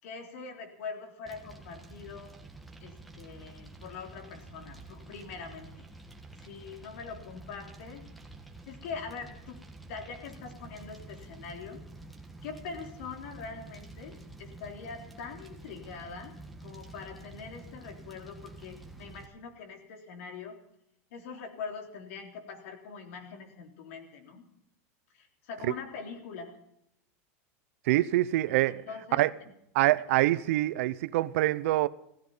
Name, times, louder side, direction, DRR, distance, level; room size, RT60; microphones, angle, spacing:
voice 1, 0.0-2.4 2.8-5.9 6.4-8.1 8.7-9.6 9.9-11.8 12.4-20.6 21.1-24.5 25.1-26.6 28.5-29.3, left 5 dB, 70° left, 3.7 m, -43 dB
Fire, 1.3-19.3, right 2 dB, ahead, 1.6 m, -49 dB
voice 2, 27.9-28.8 29.2-29.3 29.7-31.9, right 16 dB, 70° right, 0.7 m, -25 dB
16.0 x 15.0 x 5.6 m
supercardioid pair, 160°, 8 cm